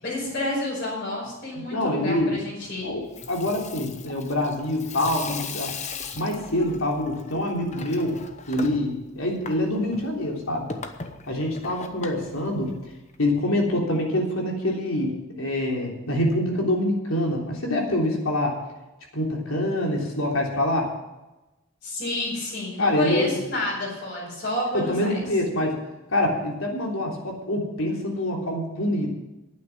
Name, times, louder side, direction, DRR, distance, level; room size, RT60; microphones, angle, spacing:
voice 1, 0.0-2.9 21.8-25.2, left 2 dB, 50° left, -8 dB, 5.8 m, -29 dB
voice 2, 1.6-2.3 2.8-5.7 6.1-8.2 8.5-10.7 11.3-12.7 13.2-18.6 19.1-20.9 22.8-23.5 24.7-25.8 26.1-29.1, left 1 dB, 70° left, 0 dB, 3.5 m, -25 dB
Water tap faucet / Sink (filling or washing), 3.0-13.2, left 4 dB, 30° left, 0.9 m, -39 dB
11.5 x 9.3 x 7.5 m, 1.0 s
head